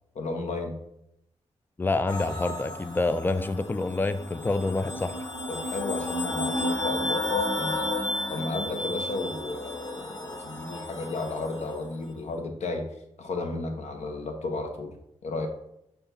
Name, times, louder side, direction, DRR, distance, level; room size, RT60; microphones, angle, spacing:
voice 1, 0.1-0.7 5.5-7.9 8.3-12.8 13.2-14.9 15.2-15.5, left 3 dB, 65° left, 4 dB, 0.9 m, -33 dB
voice 2, 1.8-5.1, left 2 dB, 15° left, 10 dB, 0.4 m, -27 dB
sound 1, 2.1-11.8, left 1 dB, 35° left, 1.3 m, -32 dB
5.5 x 2.3 x 4.1 m, 0.79 s
cardioid pair, 55°, 12 cm